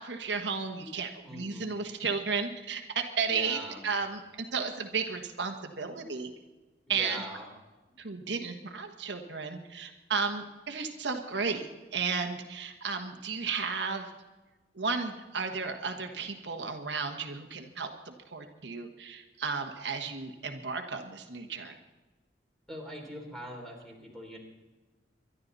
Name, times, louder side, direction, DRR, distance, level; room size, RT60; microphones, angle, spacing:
voice 1, 0.0-6.3 6.9-7.2 8.0-14.1 14.7-21.7, right 5 dB, 75° right, 4 dB, 1.4 m, -34 dB
voice 2, 1.2-1.7 3.3-3.8 6.9-7.5 22.7-24.4, equal, 5° left, 0 dB, 3.7 m, -42 dB
24.0 x 11.5 x 4.1 m, 1.2 s
head